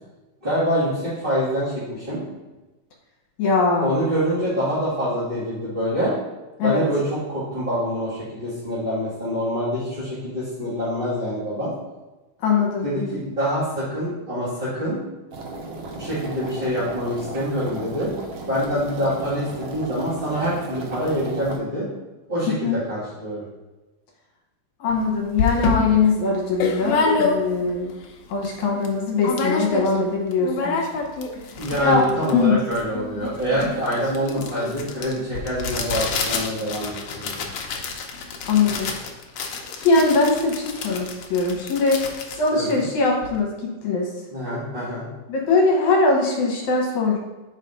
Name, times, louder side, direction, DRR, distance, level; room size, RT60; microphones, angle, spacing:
voice 1, 0.4-2.2 3.8-6.1 6.6-11.7 12.8-15.0 15.9-18.1 18.5-21.9 22.3-23.4 31.6-37.3 42.5-42.8 44.3-45.0, equal, 25° right, -13 dB, 1.4 m, -25 dB
voice 2, 3.4-3.9 6.6-6.8 12.4-12.9 22.6-22.8 24.8-27.9 28.3-30.8 31.8-32.0 32.3-32.6 38.5-38.9 39.8-42.1 42.4-44.1 45.3-47.2, left 3 dB, 70° left, -1 dB, 2.2 m, -21 dB
sound 1, 15.3-21.6, right 2 dB, 75° right, 1.4 m, -35 dB
sound 2, 24.9-25.0 25.4-27.8 28.2-28.3 28.4-28.9 29.2-30.0 30.3-43.4, left 4 dB, 90° left, 1.4 m, -27 dB
5.3 x 4.1 x 5.3 m, 1.1 s
omnidirectional pair, 3.8 m